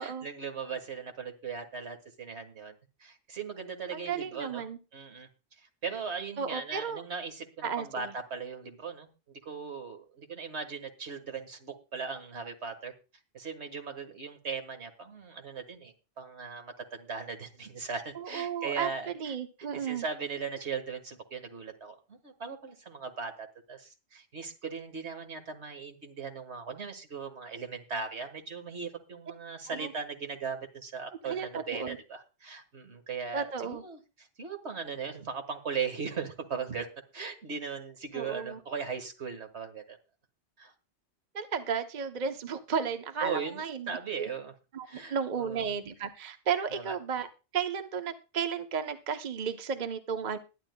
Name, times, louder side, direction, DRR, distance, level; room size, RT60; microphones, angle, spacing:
voice 1, 0.0-4.6 4.9-5.3 5.6-9.1 9.4-12.9 13.3-19.3 19.7-36.9 37.1-40.0 40.6-40.7 43.2-44.5 44.9-45.6 46.7-46.9, right 5 dB, 75° right, 8 dB, 1.8 m, -38 dB
voice 2, 3.9-4.8 6.4-7.0 7.6-8.1 18.1-18.9 19.1-20.0 29.7-29.9 31.2-32.0 33.3-33.8 38.1-38.6 41.3-44.3 44.7-50.4, right 6 dB, 45° right, 8 dB, 0.8 m, -34 dB
21.5 x 10.0 x 2.2 m, 0.31 s
omnidirectional pair, 1.1 m